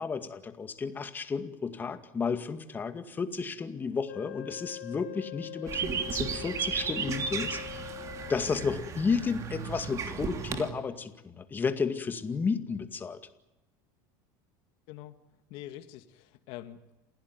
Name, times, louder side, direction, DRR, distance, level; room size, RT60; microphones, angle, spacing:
voice 1, 0.0-7.9 8.3-13.2, left 5 dB, 20° left, 9 dB, 2.1 m, -32 dB
Wind instrument woodwind instrument, 4.1-8.8, left 20 dB, 80° left, 1.8 m, -43 dB
sound 1, 5.7-10.7, right 6 dB, 30° right, 3.1 m, -34 dB
voice 2, 14.9-15.2 15.5-16.9, left 13 dB, 60° left, 9 dB, 2.0 m, -45 dB
28.5 x 16.5 x 9.6 m, 0.99 s
supercardioid pair, 140°, 10 cm